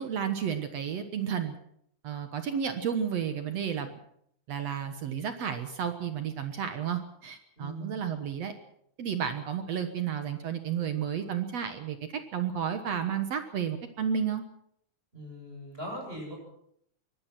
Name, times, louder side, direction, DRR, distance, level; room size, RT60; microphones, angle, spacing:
voice 1, 0.0-1.5 2.0-3.9 4.5-8.6 9.0-14.4, right 8 dB, 65° right, 8 dB, 2.3 m, -32 dB
voice 2, 7.6-8.0 15.1-16.4, equal, 15° right, 1 dB, 8.3 m, -40 dB
24.0 x 18.5 x 6.1 m, 0.70 s
omnidirectional pair, 3.4 m